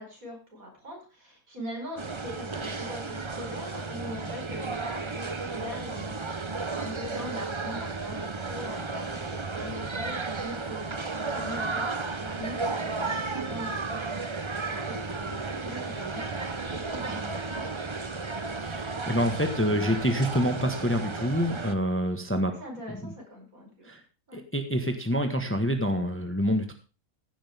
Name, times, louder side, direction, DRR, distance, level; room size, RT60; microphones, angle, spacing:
voice 1, 0.0-14.2 14.6-17.7 22.6-23.9 24.3-24.4, equal, 65° right, 0 dB, 5.5 m, -42 dB
sound 1, 2.0-21.7, right 3 dB, 25° right, 0.8 m, -33 dB
voice 2, 18.6-22.5 23.0-23.1 23.8-24.0 24.3-26.7, equal, 10° left, 5 dB, 1.4 m, -27 dB
15.5 x 10.0 x 3.6 m, 0.33 s
omnidirectional pair, 1.6 m